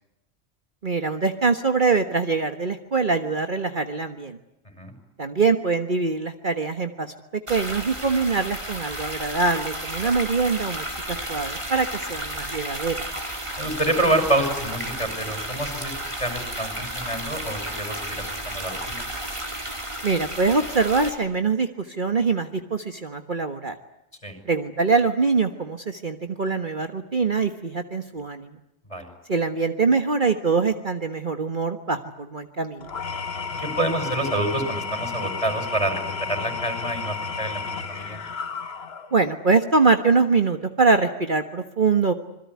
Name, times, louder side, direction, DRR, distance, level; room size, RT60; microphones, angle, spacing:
voice 1, 0.8-4.4 5.2-7.1 7.5-12.9 20.0-23.8 24.4-28.5 29.3-32.9 39.1-42.1, right 4 dB, 40° right, 7 dB, 1.5 m, -23 dB
sound 1, 7.5-21.1, right 1 dB, 25° right, 4.4 m, -33 dB
voice 2, 13.6-15.9 16.2-19.0 24.2-24.4 28.9-29.1 33.8-38.2, right 1 dB, 25° left, 7 dB, 6.2 m, -27 dB
Engine / Tools, 32.8-39.2, left 5 dB, 55° left, 1.5 m, -32 dB
27.0 x 21.5 x 9.6 m, 0.86 s
omnidirectional pair, 1.3 m